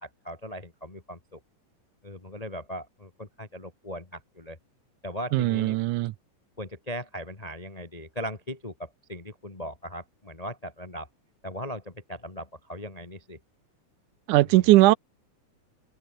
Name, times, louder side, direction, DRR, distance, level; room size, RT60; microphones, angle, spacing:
voice 1, 0.0-1.4 2.0-4.6 5.0-5.8 6.6-11.1 11.4-13.4, equal, 15° left, 1.4 m, -38 dB
voice 2, 5.3-6.1 14.3-14.9, right 18 dB, 80° right, 2.1 m, -19 dB
omnidirectional pair, 3.7 m